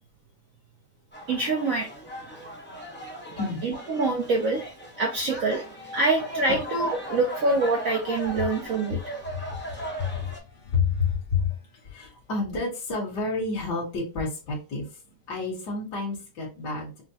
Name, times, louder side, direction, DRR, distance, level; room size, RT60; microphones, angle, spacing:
sound 1, 1.1-10.4, equal, 15° left, 0.3 m, -38 dB
voice 1, 1.3-1.9 3.6-4.6 5.0-5.6 5.9-9.1, right 3 dB, 75° right, 0.7 m, -25 dB
voice 2, 9.3-15.0 15.3-17.0, left 4 dB, 60° left, 1.7 m, -30 dB
5.6 x 2.0 x 2.7 m
omnidirectional pair, 2.2 m